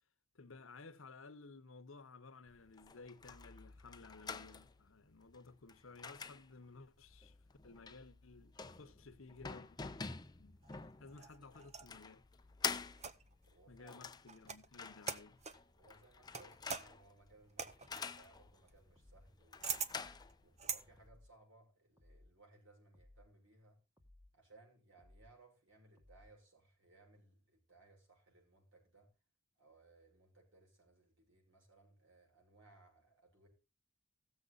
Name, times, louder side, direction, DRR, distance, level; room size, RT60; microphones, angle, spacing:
voice 1, 0.3-7.4 7.6-9.7 10.0-10.6 11.0-12.2 13.7-15.4, left 3 dB, 80° left, 1.0 m, -56 dB
sound 1, 2.5-21.1, left 5 dB, 20° left, 0.6 m, -48 dB
sound 2, 10.6-12.0 13.0-13.4 14.3-14.7 15.0-15.7 16.3-20.8, right 6 dB, 35° right, 0.8 m, -44 dB
voice 2, 13.5-14.0 15.7-19.9 20.4-23.8 24.3-29.1 29.6-33.5, right 2 dB, 70° right, 6.4 m, -65 dB
sound 3, 19.0-19.4 20.0-20.4 21.0-21.4 22.0-22.4 22.9-23.3 24.0-24.4 25.0-25.4 26.0-26.4, left 1 dB, 15° right, 1.9 m, -63 dB
16.5 x 7.3 x 4.0 m
head